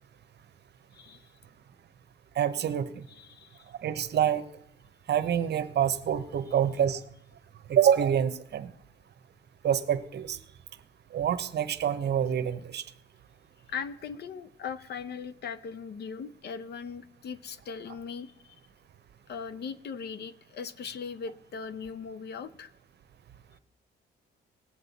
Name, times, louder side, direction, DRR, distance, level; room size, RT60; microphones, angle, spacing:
voice 1, 0.9-1.3 3.1-3.7 13.7-18.6 19.3-22.7, left 6 dB, 55° left, 14 dB, 0.7 m, -39 dB
voice 2, 2.4-3.0 3.8-4.4 5.1-7.0 7.7-8.7 9.6-10.4 11.1-12.8, right 9 dB, 60° right, 12 dB, 0.9 m, -26 dB
18.5 x 7.7 x 4.1 m, 0.74 s
cardioid pair, 90°, 20 cm